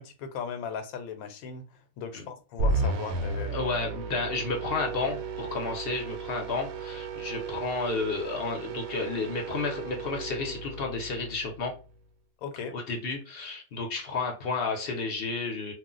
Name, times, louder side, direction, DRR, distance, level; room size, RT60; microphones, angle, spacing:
voice 1, 0.0-3.6 12.4-12.7, left 6 dB, 85° left, 1.1 m, -38 dB
sound 1, 2.6-12.0, right 3 dB, 90° right, 1.0 m, -34 dB
voice 2, 3.5-11.7 12.7-15.7, left 4 dB, 55° left, 0.8 m, -32 dB
2.4 x 2.1 x 3.7 m
omnidirectional pair, 1.4 m